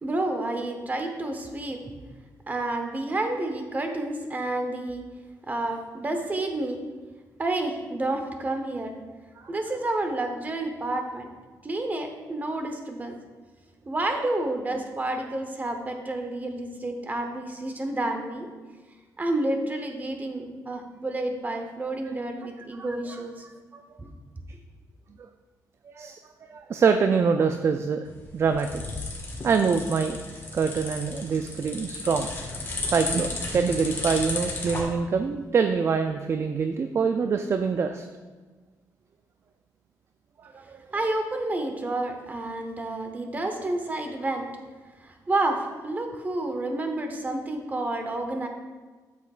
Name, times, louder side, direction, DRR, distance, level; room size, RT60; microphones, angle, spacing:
voice 1, 0.0-1.9 2.5-5.0 5.5-6.8 7.4-9.0 9.5-11.3 11.6-13.2 13.9-18.5 19.2-23.5 24.0-24.1 24.5-24.6 40.9-44.5 45.0-48.5, right 2 dB, 25° right, 5 dB, 0.9 m, -30 dB
voice 2, 26.5-28.1 28.3-28.8 29.4-30.2 30.5-32.3 32.8-38.1 40.4-40.8, right 5 dB, 40° right, 7 dB, 0.3 m, -25 dB
sound 1, 28.1-34.8, left 2 dB, 35° left, 1.5 m, -34 dB
8.3 x 7.1 x 2.4 m, 1.3 s
cardioid pair, 115°, 7 cm